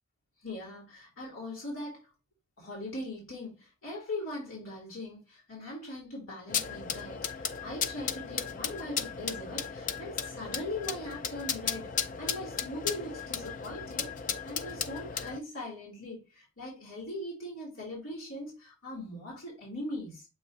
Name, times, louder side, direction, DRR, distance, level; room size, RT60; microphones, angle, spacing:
voice 1, 0.4-2.0 2.6-11.9 12.2-20.3, left 1 dB, 75° left, 3.3 m, -40 dB
sound 1, 6.5-15.4, left 7 dB, 35° left, 0.4 m, -35 dB
7.5 x 3.0 x 4.1 m
head